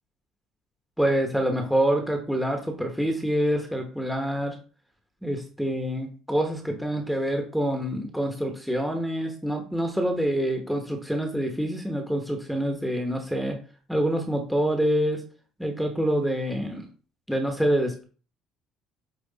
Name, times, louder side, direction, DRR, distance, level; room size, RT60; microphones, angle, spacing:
voice 1, 1.0-4.6 5.2-13.6 13.9-15.2 15.6-16.8 17.3-18.0, equal, ahead, 4 dB, 1.2 m, -26 dB
8.7 x 3.1 x 4.1 m, 0.38 s
cardioid pair, 120°, 0 cm